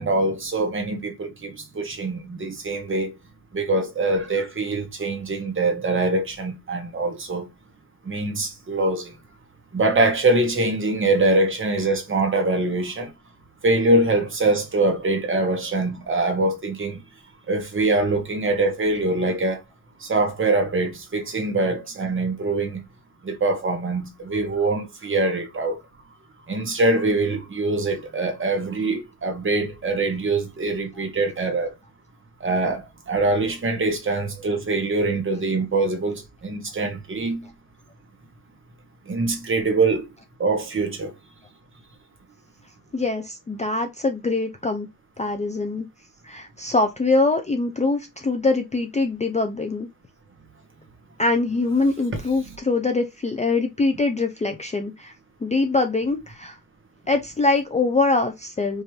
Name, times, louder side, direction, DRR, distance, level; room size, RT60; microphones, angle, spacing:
voice 1, 0.0-3.1 3.5-7.5 8.0-9.1 9.7-13.1 13.6-17.0 17.5-19.6 20.0-22.8 23.2-25.8 26.5-31.7 32.4-37.5 39.1-40.1 40.4-41.1 52.5-52.6, right 2 dB, 35° right, 1.1 m, -23 dB
voice 2, 42.9-44.9 45.2-45.9 46.2-49.9 51.2-55.1 55.4-56.6 57.1-58.8, left 3 dB, 20° left, 0.4 m, -23 dB
5.1 x 2.5 x 3.1 m
wide cardioid pair, 160°, 37 cm